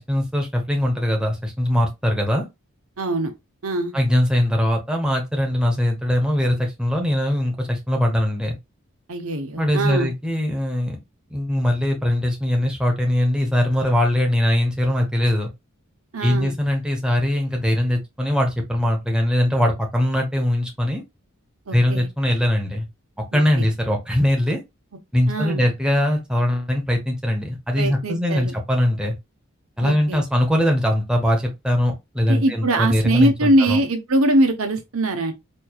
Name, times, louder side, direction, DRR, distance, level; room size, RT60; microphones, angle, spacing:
voice 1, 0.1-2.4 3.9-8.6 9.6-11.0 11.3-15.5 16.2-21.0 21.7-22.9 23.3-24.6 25.1-29.1 29.8-33.8, left 1 dB, 5° right, 0.9 m, -21 dB
voice 2, 3.0-3.3 3.6-3.9 9.1-10.1 16.1-16.5 21.7-22.1 23.3-23.7 25.3-25.6 27.8-28.5 29.8-30.2 32.3-35.3, right 1 dB, 80° right, 0.9 m, -22 dB
4.4 x 3.2 x 2.3 m
head